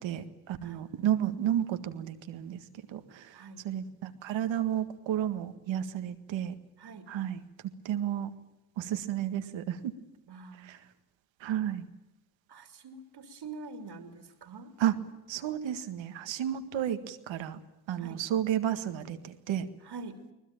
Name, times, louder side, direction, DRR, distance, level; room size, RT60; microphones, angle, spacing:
voice 1, 0.0-2.6 2.9-6.5 7.1-7.4 7.9-8.3 8.8-9.9 10.6-10.8 11.4-11.9 14.8-14.9 15.3-17.6 17.9-19.7, right 11 dB, 80° right, 9 dB, 1.9 m, -32 dB
voice 2, 3.3-3.8 6.8-7.1 10.3-10.7 12.5-14.7 18.0-18.2 19.8-20.2, right 4 dB, 65° right, 6 dB, 3.0 m, -45 dB
22.5 x 20.5 x 9.1 m, 0.96 s
supercardioid pair, 50°, 44 cm